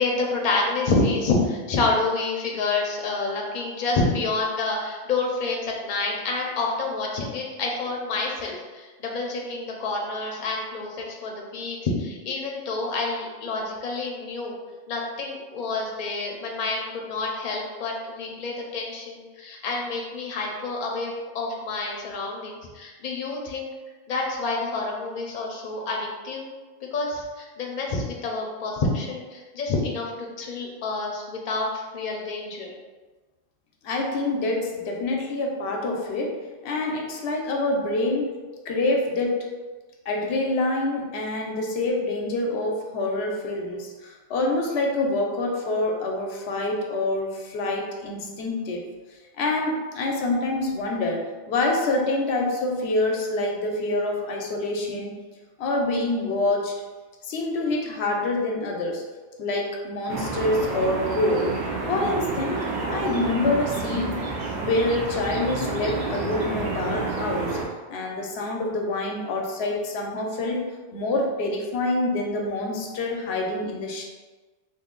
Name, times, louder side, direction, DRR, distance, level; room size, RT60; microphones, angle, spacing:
voice 1, 0.0-14.5 14.9-23.7 24.1-26.5 26.9-32.7, left 3 dB, 50° left, -1 dB, 0.7 m, -28 dB
voice 2, 33.8-38.4 38.7-39.5 40.1-48.8 49.3-55.1 55.6-56.8 57.2-59.0 59.4-61.6 61.9-62.6 62.9-64.2 64.5-67.6 67.9-70.7 70.9-74.1, left 2 dB, 85° left, 1 dB, 0.9 m, -26 dB
sound 1, 60.1-67.7, right 3 dB, 55° right, 0.6 m, -29 dB
2.7 x 2.7 x 3.7 m, 1.3 s
omnidirectional pair, 1.1 m